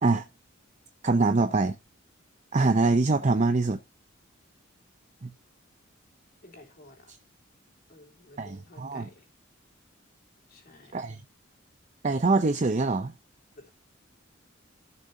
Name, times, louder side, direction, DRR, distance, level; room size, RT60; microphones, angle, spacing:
voice 1, 1.0-1.8 2.5-3.8 5.2-5.3 8.4-9.1 10.9-11.2 12.0-13.1, right 3 dB, 35° right, 0.6 m, -24 dB
voice 2, 6.4-7.1 7.9-9.3 10.5-11.0 13.5-13.7, left 1 dB, 50° left, 3.4 m, -52 dB
15.5 x 6.4 x 2.7 m
head